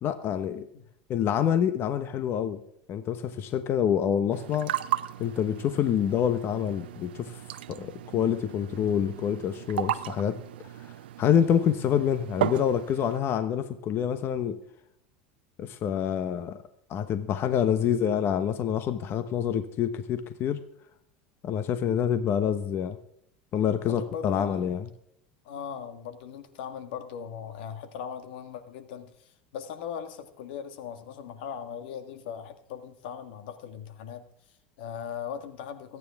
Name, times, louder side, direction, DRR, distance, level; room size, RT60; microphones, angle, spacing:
voice 1, 0.0-0.7 1.1-2.6 2.9-4.7 5.2-7.4 7.7-10.4 11.2-14.6 15.6-16.6 16.9-20.6 21.4-23.0 23.5-24.8, left 9 dB, 45° left, 10 dB, 1.0 m, -27 dB
sound 1, 4.3-13.2, right 13 dB, 90° right, 0.7 m, -35 dB
voice 2, 17.5-18.0 23.9-24.7 25.4-36.0, left 8 dB, 75° left, 9 dB, 1.7 m, -39 dB
24.0 x 9.6 x 3.6 m, 0.71 s
supercardioid pair, 105°, 5 cm